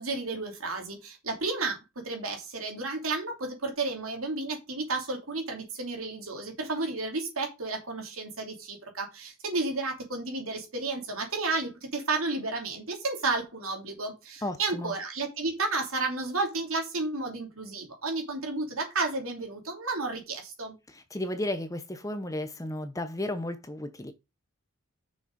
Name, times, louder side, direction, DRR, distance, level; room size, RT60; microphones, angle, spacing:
voice 1, 0.0-20.7, right 3 dB, 70° right, 3.0 m, -32 dB
voice 2, 14.4-14.9 20.9-24.1, left 1 dB, 15° left, 0.8 m, -34 dB
6.5 x 6.1 x 5.2 m
head